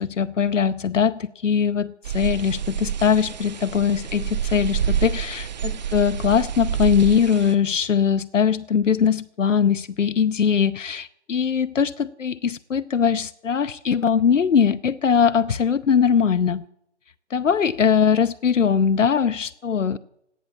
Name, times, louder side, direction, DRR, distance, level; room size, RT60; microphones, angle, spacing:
voice 1, 0.0-16.6 17.3-20.0, left 7 dB, 85° left, 0.8 m, -21 dB
sound 1, 2.0-7.5, right 8 dB, 35° right, 1.0 m, -28 dB
17.5 x 11.0 x 7.2 m
figure-of-eight pair, 150°, 36 cm